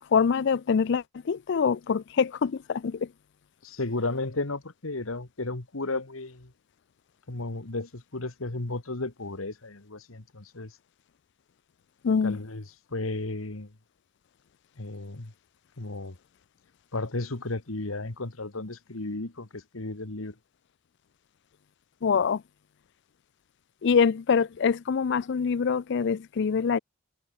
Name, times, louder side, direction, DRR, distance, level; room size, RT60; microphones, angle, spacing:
voice 1, 0.1-3.1 12.0-12.4 22.0-22.4 23.8-26.8, left 6 dB, 60° left, 0.4 m, -25 dB
voice 2, 3.6-6.5 7.3-10.8 12.2-12.6 12.9-13.7 14.8-15.3 15.8-16.2 16.9-20.3, left 2 dB, 85° left, 1.8 m, -34 dB
head